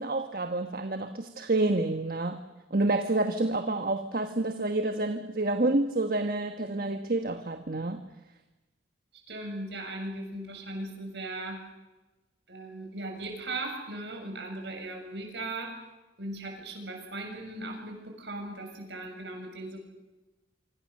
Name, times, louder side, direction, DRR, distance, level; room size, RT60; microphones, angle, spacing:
voice 1, 0.0-2.4 2.7-8.0, right 2 dB, 50° right, 7 dB, 1.4 m, -28 dB
voice 2, 9.3-11.6 12.5-15.8 16.2-19.8, right 2 dB, 65° right, 3 dB, 7.0 m, -38 dB
26.5 x 25.5 x 6.7 m, 1.1 s
head